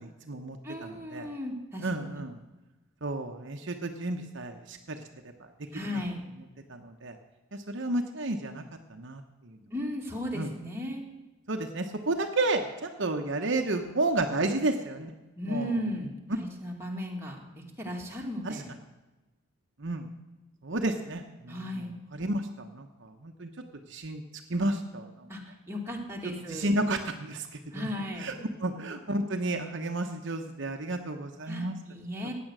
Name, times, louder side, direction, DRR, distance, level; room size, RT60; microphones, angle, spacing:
voice 1, 0.0-1.3 1.8-2.4 3.0-5.0 6.7-7.2 7.7-8.6 8.9-9.2 10.4-10.5 11.5-15.1 15.5-15.7 18.4-18.5 19.8-20.1 20.6-21.8 22.1-23.5 23.9-24.2 24.5-25.1 26.5-27.5 27.8-27.9 28.2-28.3 28.6-31.8, right 2 dB, 60° right, 4 dB, 1.0 m, -31 dB
voice 2, 0.6-2.2 5.7-6.3 9.7-11.0 15.4-18.7 21.5-22.0 25.3-26.8 27.7-28.5 31.5-32.3, left 1 dB, 10° right, -1 dB, 2.3 m, -36 dB
15.5 x 9.4 x 6.2 m, 1.1 s
head